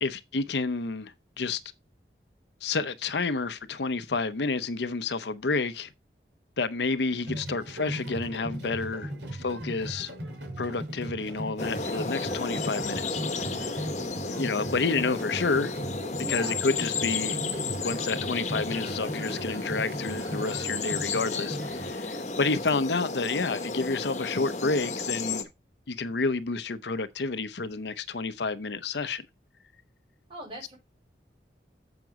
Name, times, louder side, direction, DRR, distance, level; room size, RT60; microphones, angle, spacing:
voice 1, 0.0-1.6 2.6-5.9 6.6-10.1 10.6-13.2 14.4-15.7 16.3-17.4 17.8-25.5 25.9-29.2, left 4 dB, 80° left, 0.7 m, -30 dB
sound 1, 7.2-21.9, right 1 dB, 80° right, 5.0 m, -38 dB
sound 2, 11.6-25.4, left 4 dB, 40° left, 1.1 m, -33 dB
voice 2, 16.2-16.6 30.3-30.8, right 1 dB, 30° right, 5.6 m, -40 dB
7.9 x 5.9 x 4.7 m
head